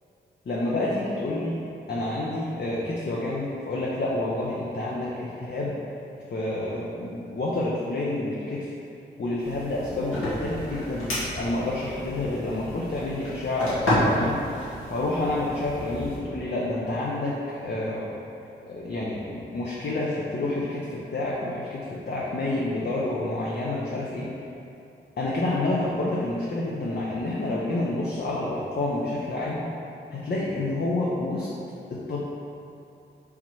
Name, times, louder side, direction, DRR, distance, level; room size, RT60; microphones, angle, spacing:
voice 1, 0.5-1.6 1.9-5.7 6.3-8.7 9.2-14.4 14.9-17.3 17.6-18.1 18.7-24.3 25.2-29.6 30.1-31.5 31.9-32.2, left 2 dB, 50° left, -6 dB, 0.7 m, -28 dB
sound 1, 9.4-16.2, equal, 80° left, 1.3 m, -31 dB
3.6 x 3.0 x 4.6 m, 2.6 s
supercardioid pair, 40°, 21 cm